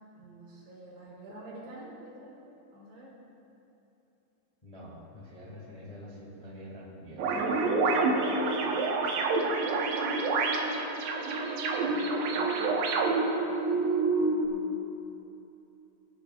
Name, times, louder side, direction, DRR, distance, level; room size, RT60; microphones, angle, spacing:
voice 1, 0.2-2.4 2.7-3.1 7.8-9.2 12.0-13.2 14.2-14.9, right 1 dB, 70° right, -6 dB, 5.2 m, -49 dB
voice 2, 4.6-7.3, left 1 dB, 15° left, -6 dB, 1.2 m, -46 dB
sound 1, 7.2-14.5, right 3 dB, 90° right, 3.5 m, -27 dB
23.5 x 12.0 x 2.5 m, 2.9 s
omnidirectional pair, 5.0 m